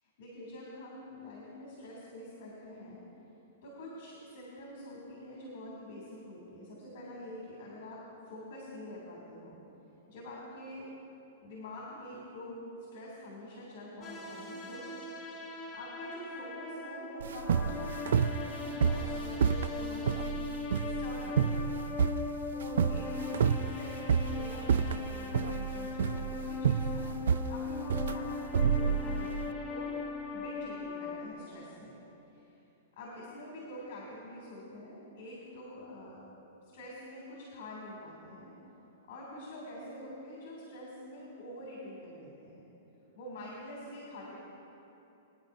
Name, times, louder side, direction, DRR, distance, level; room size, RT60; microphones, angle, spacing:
voice 1, 0.0-3.0 3.6-9.6 10.1-10.9 11.4-12.6 12.9-15.3 15.7-20.4 20.8-21.8 22.7-27.2 27.5-28.3 28.7-30.0 30.3-32.0 32.3-32.5 33.0-36.2 36.6-38.5 39.1-42.6 43.1-44.4, left 1 dB, 50° left, -4 dB, 3.0 m, -46 dB
sound 1, 14.0-31.3, left 4 dB, 15° left, 0.9 m, -39 dB
sound 2, 17.2-29.4, right 7 dB, 80° right, 0.3 m, -30 dB
22.5 x 9.8 x 2.7 m, 3.0 s
hypercardioid pair, 165°, 0 cm